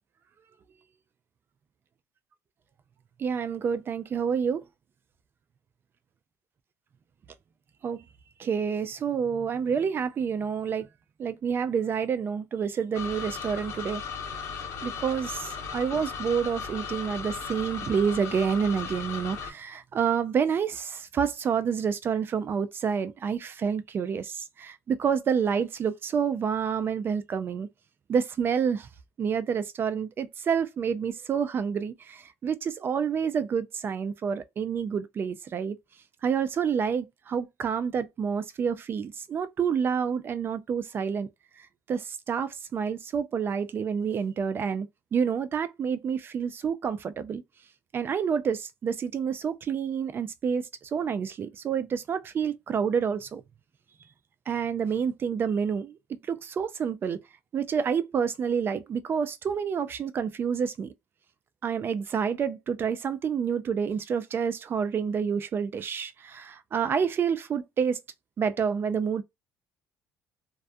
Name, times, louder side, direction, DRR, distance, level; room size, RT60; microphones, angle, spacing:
voice 1, 3.2-4.6 7.8-8.0 8.4-10.9 11.2-14.0 14.8-27.7 28.1-28.9 29.2-35.8 36.2-41.3 41.9-44.9 45.1-47.4 47.9-53.4 54.5-56.0 56.3-57.2 57.5-60.9 61.6-68.0 68.4-69.2, right 7 dB, 40° right, 0.4 m, -28 dB
sound 1, 12.9-19.5, left 6 dB, 55° left, 0.9 m, -36 dB
2.3 x 2.2 x 2.5 m
cardioid pair, 105°, 6 cm